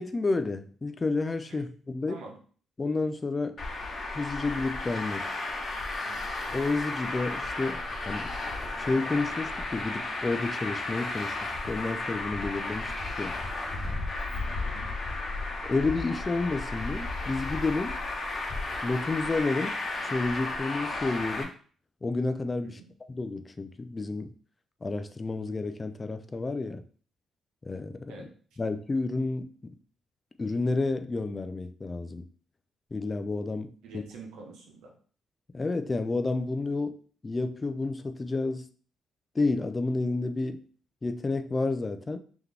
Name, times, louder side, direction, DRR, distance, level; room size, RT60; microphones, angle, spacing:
voice 1, 0.0-2.2 2.8-3.6 4.1-5.3 6.5-7.8 8.1-8.3 8.8-12.9 13.2-13.3 15.6-18.0 18.8-19.8 20.0-21.5 22.0-22.8 23.1-24.3 24.8-26.8 27.6-28.3 28.6-29.5 30.4-32.2 32.9-34.0 35.5-37.0 37.2-38.7 39.3-40.6 41.0-42.2, left 3 dB, 25° left, 9 dB, 0.4 m, -30 dB
Traffic noise roadway noise, 3.6-21.4, left 2 dB, 40° left, 1.0 m, -34 dB
voice 2, 14.3-14.9 22.6-22.9 28.1-28.3 33.8-34.9, right 4 dB, 90° right, 0 dB, 1.1 m, -46 dB
3.8 x 2.9 x 3.4 m, 0.43 s
cardioid pair, 90°, 0 cm